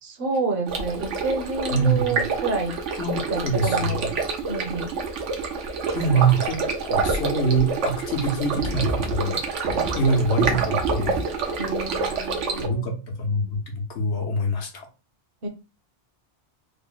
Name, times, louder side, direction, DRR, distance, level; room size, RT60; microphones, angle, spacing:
voice 1, 0.0-2.7 3.3-4.1 4.5-4.9 11.6-12.9 15.4-15.5, right 3 dB, 55° right, 3 dB, 0.9 m, -28 dB
Stream, 0.7-12.7, right 4 dB, 85° right, 1.1 m, -27 dB
voice 2, 1.7-2.2 3.0-4.1 5.9-9.4 9.9-11.2 12.6-14.9, right 3 dB, 70° left, 2 dB, 1.1 m, -24 dB
3.5 x 2.1 x 3.8 m, 0.31 s
omnidirectional pair, 1.2 m